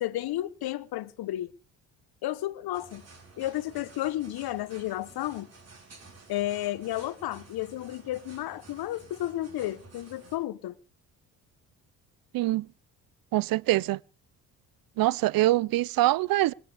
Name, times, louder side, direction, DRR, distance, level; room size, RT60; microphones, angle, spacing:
voice 1, 0.0-1.5 2.2-3.0 3.4-5.5 6.3-10.7, left 14 dB, 70° left, 1.1 m, -32 dB
sound 1, 2.7-10.4, right 3 dB, 40° right, 5.3 m, -52 dB
voice 2, 12.3-12.7 13.3-14.0 15.0-16.5, right 16 dB, 60° right, 0.6 m, -24 dB
25.5 x 10.0 x 3.5 m
supercardioid pair, 70°, 40 cm